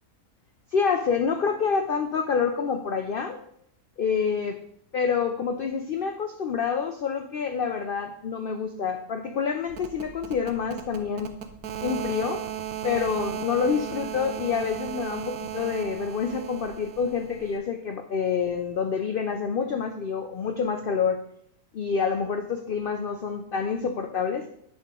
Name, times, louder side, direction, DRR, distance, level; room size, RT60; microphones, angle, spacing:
voice 1, 0.7-3.4 4.0-4.6 4.9-11.3 11.8-12.4 12.8-21.2 21.7-24.5, left 6 dB, 80° left, 6 dB, 0.4 m, -27 dB
sound 1, 9.7-17.6, right 11 dB, 80° right, 1.2 m, -36 dB
10.5 x 3.8 x 3.6 m, 0.71 s
omnidirectional pair, 1.6 m